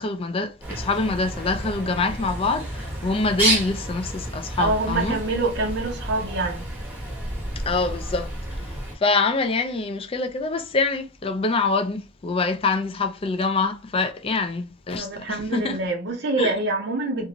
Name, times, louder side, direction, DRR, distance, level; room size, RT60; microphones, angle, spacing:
voice 1, 0.0-5.2 7.7-8.6 9.0-15.8 16.4-16.5, left 3 dB, 25° left, 0.4 m, -25 dB
Bird, 0.6-9.0, right 1 dB, 10° right, 0.9 m, -30 dB
voice 2, 4.6-6.6 15.0-17.3, right 3 dB, 55° right, 0.5 m, -26 dB
2.6 x 2.5 x 2.9 m
head